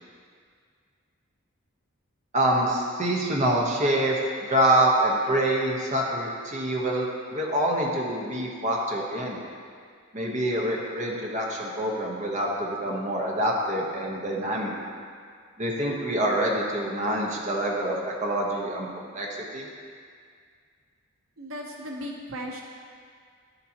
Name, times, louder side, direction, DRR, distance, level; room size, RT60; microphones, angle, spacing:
voice 1, 2.3-9.4 10.1-14.7 15.6-18.9 19.1-19.7, right 1 dB, 35° right, -2 dB, 1.1 m, -26 dB
voice 2, 21.4-22.6, equal, 90° right, 0 dB, 0.9 m, -36 dB
11.0 x 6.9 x 2.9 m, 2.1 s
head